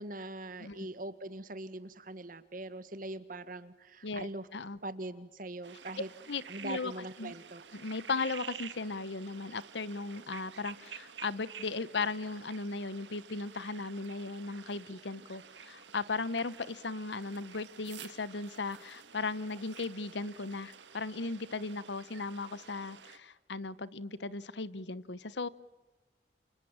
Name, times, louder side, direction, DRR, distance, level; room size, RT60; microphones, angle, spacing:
voice 1, 0.0-4.5 4.8-6.1 6.5-7.6, right 2 dB, 50° right, 12 dB, 1.7 m, -42 dB
voice 2, 4.0-4.8 6.3-6.9 7.2-7.3 7.7-25.5, left 3 dB, 75° left, 17 dB, 1.0 m, -37 dB
sound 1, 5.6-23.2, right 7 dB, 80° right, 1.8 m, -51 dB
29.0 x 28.0 x 7.4 m, 1.1 s
head